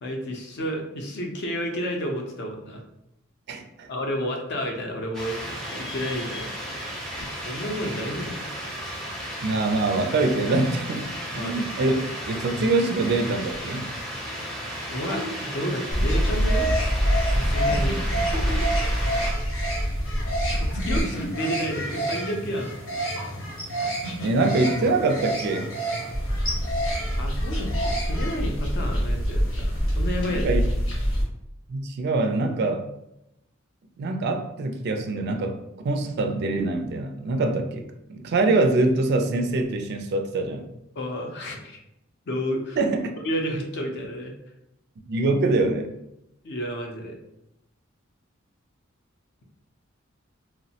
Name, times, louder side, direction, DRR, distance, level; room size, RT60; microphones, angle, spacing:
voice 1, 0.0-2.8 3.9-6.5 7.2-8.5 11.4-11.7 14.9-16.7 17.3-18.0 20.5-22.7 27.2-30.5 40.9-41.8 42.3-42.8 43.2-44.3 46.4-47.2, equal, 55° left, 2 dB, 0.5 m, -31 dB
voice 2, 3.5-3.9 9.4-13.9 24.2-25.8 30.3-30.6 31.7-32.8 34.0-35.6 35.8-37.8 38.1-40.6 42.8-43.1 45.1-45.9, right 2 dB, 55° right, 5 dB, 0.3 m, -24 dB
sound 1, 5.1-19.3, equal, ahead, 0.5 m, -34 dB
sound 2, 15.9-31.2, equal, 90° left, 1.0 m, -26 dB
3.0 x 2.0 x 2.7 m, 0.84 s
head